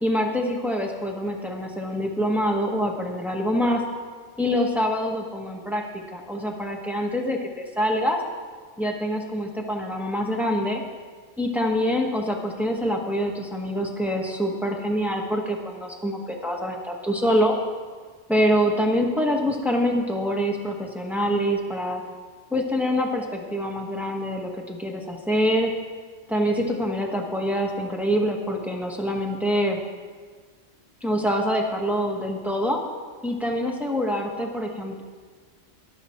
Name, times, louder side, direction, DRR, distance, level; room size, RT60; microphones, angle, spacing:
voice 1, 0.0-3.8 4.4-8.2 8.8-10.8 11.4-17.5 18.3-22.0 22.5-25.7 26.3-29.8 31.0-32.8 33.2-35.0, equal, ahead, 0 dB, 1.4 m, -25 dB
13.5 x 11.0 x 4.5 m, 1.5 s
omnidirectional pair, 1.3 m